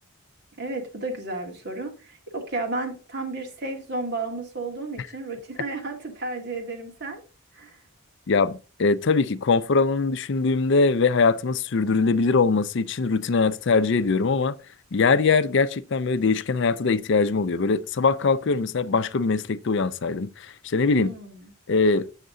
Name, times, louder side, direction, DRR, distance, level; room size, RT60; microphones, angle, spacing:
voice 1, 0.6-7.2 7.5-7.8 20.9-21.5, right 2 dB, 50° right, 2.1 m, -33 dB
voice 2, 8.3-14.6 14.9-21.1 21.7-22.1, left 4 dB, 55° left, 0.5 m, -22 dB
8.1 x 6.4 x 3.7 m
head